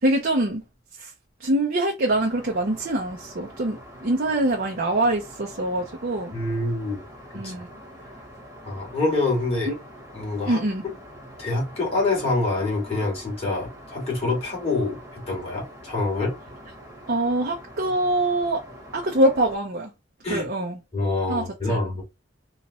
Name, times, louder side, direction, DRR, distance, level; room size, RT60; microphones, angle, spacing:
voice 1, 0.0-0.6 1.0-1.1 1.4-6.3 7.3-7.7 9.7-9.8 10.5-10.8 17.1-18.6 18.9-19.9 20.3-20.8 21.3-22.0, right 1 dB, 55° right, 0.7 m, -24 dB
Aircraft, 2.1-19.6, equal, 15° right, 1.2 m, -45 dB
voice 2, 6.3-7.0 7.4-7.5 8.6-9.7 10.1-10.6 11.4-16.4 20.2-20.5 20.9-22.0, left 2 dB, 35° left, 2.3 m, -26 dB
4.1 x 2.4 x 3.0 m
head